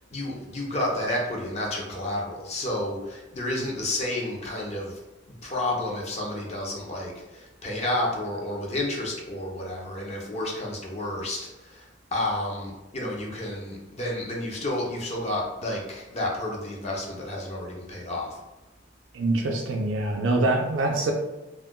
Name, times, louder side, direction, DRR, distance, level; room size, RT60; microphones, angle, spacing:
voice 1, 0.1-5.0 5.4-11.9 12.1-18.4, left 1 dB, 35° left, -2 dB, 0.6 m, -31 dB
voice 2, 19.1-21.1, right 2 dB, 90° right, 1 dB, 0.4 m, -24 dB
2.4 x 2.2 x 3.6 m, 1.1 s
head